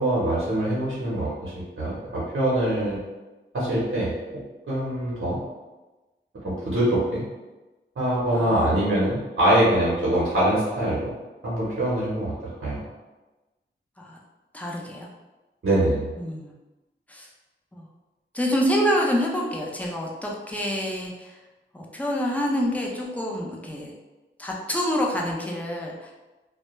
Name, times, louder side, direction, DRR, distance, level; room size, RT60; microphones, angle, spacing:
voice 1, 0.0-3.0 3.5-4.1 4.7-5.4 6.4-7.2 8.0-11.1 11.4-12.3 12.6-12.8 15.6-16.1, right 1 dB, 70° right, -8 dB, 0.8 m, -23 dB
voice 2, 14.5-15.1 16.2-16.5 17.1-17.3 17.7-17.9 18.3-21.4 21.7-23.9 24.4-26.1, equal, 5° left, -2 dB, 0.5 m, -27 dB
2.2 x 2.1 x 2.9 m, 1.1 s
wide cardioid pair, 55°, 21 cm